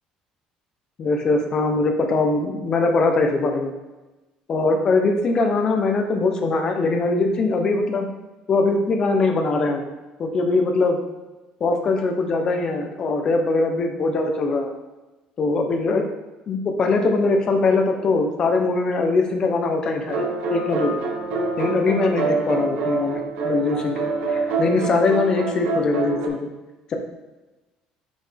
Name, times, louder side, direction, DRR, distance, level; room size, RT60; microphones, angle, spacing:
voice 1, 1.0-3.7 4.5-8.1 8.5-9.8 10.2-11.0 11.6-14.7 15.4-16.0 16.5-20.9 21.6-26.5 26.9-27.0, left 3 dB, 30° left, 4 dB, 0.7 m, -21 dB
sound 1, 20.1-26.3, right 3 dB, 65° right, 1.0 m, -26 dB
5.6 x 5.2 x 3.4 m, 1.1 s
cardioid pair, 175°, 2 cm